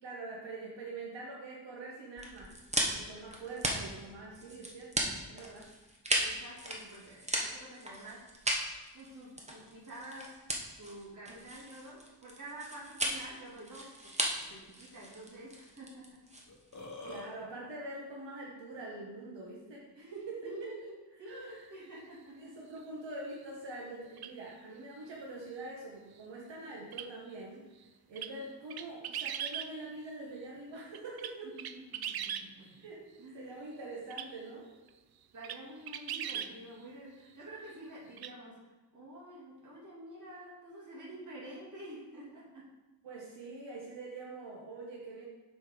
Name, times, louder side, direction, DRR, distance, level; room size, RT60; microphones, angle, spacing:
voice 1, 0.0-2.5 2.9-5.7 17.0-20.7 21.2-21.6 22.3-27.6 28.1-31.6 32.8-34.7 43.0-45.2, right 2 dB, 85° right, -3 dB, 1.3 m, -44 dB
sound 1, 2.2-16.8, right 1 dB, 15° right, 0.9 m, -36 dB
voice 2, 6.2-8.3 8.9-10.4 10.8-16.2 19.9-20.9 21.2-22.6 31.4-32.8 33.2-33.5 35.3-42.7, right 1 dB, 45° right, -6 dB, 2.4 m, -49 dB
Burping eructation, 16.5-17.3, left 3 dB, 45° left, 1.3 m, -44 dB
sound 2, 24.2-24.3 26.9-27.1 28.2-28.3 28.7-29.7 30.9-32.5 34.1-34.3 34.9-35.0 35.4-35.6 35.9-36.5 38.2-38.3, right 9 dB, 60° right, 0.5 m, -38 dB
7.7 x 4.5 x 5.0 m, 1.2 s
wide cardioid pair, 155°, 43 cm